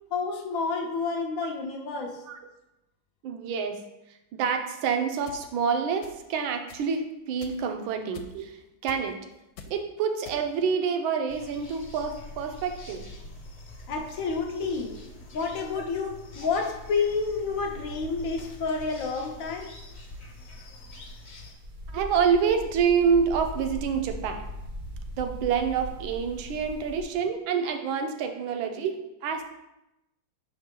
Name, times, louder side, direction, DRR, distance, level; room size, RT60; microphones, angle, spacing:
voice 1, 0.1-2.2 13.9-15.0 15.3-19.7, left 4 dB, 65° left, 2 dB, 0.8 m, -29 dB
voice 2, 3.2-3.8 4.3-9.2 9.7-13.0 21.9-24.5 25.2-29.4, right 6 dB, 80° right, 6 dB, 1.5 m, -27 dB
sound 1, 5.3-5.4 6.0-6.3 6.7-6.9 7.4-7.7 8.1-8.5 8.9-9.1 9.6-9.8 10.2-10.7, left 5 dB, 80° left, 1.4 m, -45 dB
sound 2, 11.3-21.5, left 2 dB, 40° left, 1.1 m, -44 dB
sound 3, 21.6-27.0, equal, 50° right, 0.7 m, -39 dB
6.2 x 4.3 x 3.7 m, 0.90 s
omnidirectional pair, 2.2 m